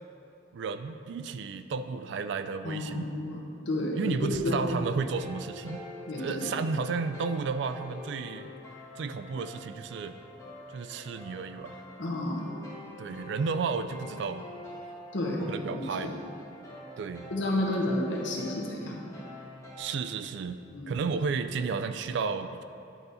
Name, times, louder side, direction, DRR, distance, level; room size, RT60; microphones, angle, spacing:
voice 1, 0.5-3.1 3.9-5.8 6.2-8.5 9.0-10.1 10.7-11.8 13.0-14.4 15.4-16.1 17.0-17.3 19.8-20.6 20.9-22.6, right 5 dB, 60° right, 10 dB, 0.3 m, -32 dB
voice 2, 2.6-3.4 3.7-4.7 6.1-6.5 12.0-12.5 15.1-15.4 15.7-16.1 17.3-19.0 20.7-20.9, left 1 dB, 70° left, -2 dB, 1.1 m, -31 dB
sound 1, 4.9-19.8, left 1 dB, 15° left, 1.3 m, -46 dB
9.8 x 4.0 x 4.0 m, 2.6 s
head